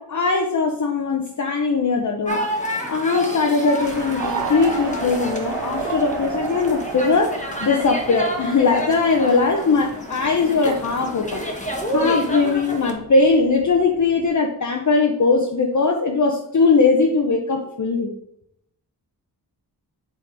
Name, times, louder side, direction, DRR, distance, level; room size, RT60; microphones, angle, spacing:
voice 1, 0.0-2.4 2.9-11.4 11.9-18.1, left 4 dB, 45° left, 2 dB, 0.8 m, -20 dB
sound 1, 2.3-12.9, equal, 20° left, 1.2 m, -30 dB
sound 2, 3.8-14.3, right 1 dB, 30° right, 2.3 m, -40 dB
sound 3, 4.2-8.7, right 8 dB, 80° right, 0.6 m, -31 dB
7.6 x 3.8 x 4.6 m, 0.76 s
wide cardioid pair, 85°, 41 cm